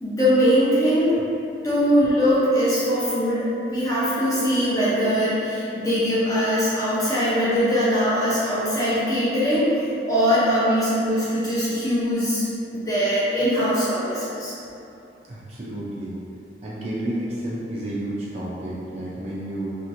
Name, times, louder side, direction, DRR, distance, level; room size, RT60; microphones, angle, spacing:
voice 1, 0.0-1.2 1.6-3.4 3.7-9.6 10.1-12.5 12.7-14.5, equal, 20° left, -10 dB, 0.6 m, -21 dB
voice 2, 15.2-16.2 16.6-19.8, right 1 dB, 35° right, -7 dB, 0.4 m, -31 dB
2.9 x 2.4 x 2.5 m, 2.7 s
head